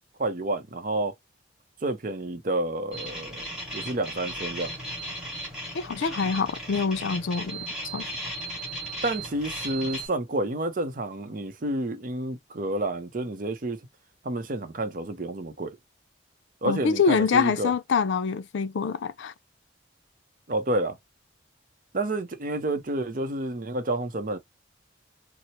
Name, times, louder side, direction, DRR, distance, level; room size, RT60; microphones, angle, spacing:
voice 1, 0.2-1.1 1.8-3.5 3.7-4.7 9.0-13.8 14.2-15.8 16.6-17.7 20.5-21.0 21.9-24.4, right 2 dB, 45° right, 0.6 m, -29 dB
sound 1, 2.9-10.1, right 1 dB, 5° right, 1.6 m, -36 dB
voice 2, 5.7-7.6 7.9-8.1 16.7-19.3, left 5 dB, 75° left, 0.4 m, -25 dB
4.3 x 2.0 x 2.8 m
head